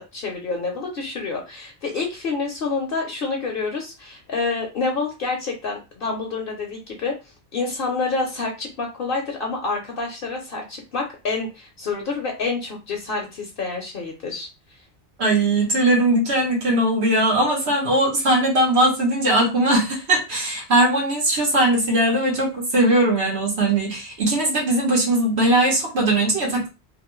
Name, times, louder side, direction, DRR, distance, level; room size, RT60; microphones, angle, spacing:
voice 1, 0.0-7.1 7.5-14.5, left 4 dB, 60° left, 1 dB, 0.8 m, -28 dB
voice 2, 15.2-26.7, right 1 dB, 80° right, -3 dB, 1.3 m, -20 dB
2.9 x 2.6 x 3.0 m, 0.29 s
omnidirectional pair, 1.1 m